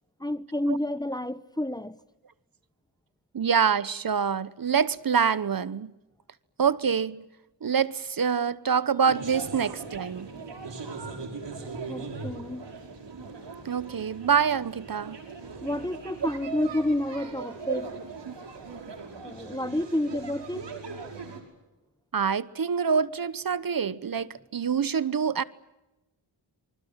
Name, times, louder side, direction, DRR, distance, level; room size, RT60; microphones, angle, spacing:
voice 1, 0.2-2.0 10.4-10.5 11.9-12.7 15.6-17.9 19.2-20.7, left 1 dB, 10° left, 1.0 m, -30 dB
voice 2, 3.3-5.9 6.6-7.2 7.6-10.3 13.6-15.2 16.2-16.3 17.7-17.8 18.3-18.4 22.1-25.4, right 6 dB, 50° right, 1.1 m, -26 dB
sound 1, 9.1-21.4, right 4 dB, 65° right, 6.0 m, -40 dB
26.5 x 25.0 x 7.4 m
cardioid pair, 60°, 45 cm